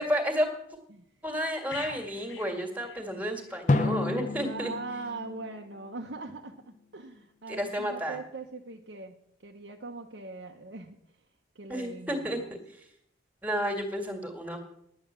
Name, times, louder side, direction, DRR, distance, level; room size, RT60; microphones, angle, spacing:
voice 1, 0.0-0.8 1.2-4.7 7.5-8.2 11.7-12.4 12.7-12.9 13.4-14.7, equal, 10° right, 4 dB, 1.9 m, -31 dB
sound 1, 1.7-3.6 3.9-4.1, left 5 dB, 80° left, 1.5 m, -44 dB
Drum, 3.7-6.4, left 2 dB, 40° left, 0.5 m, -30 dB
voice 2, 4.4-9.1 9.4-11.0 11.5-12.5, right 3 dB, 65° right, 1 dB, 0.9 m, -41 dB
10.5 x 8.9 x 7.4 m, 0.75 s
head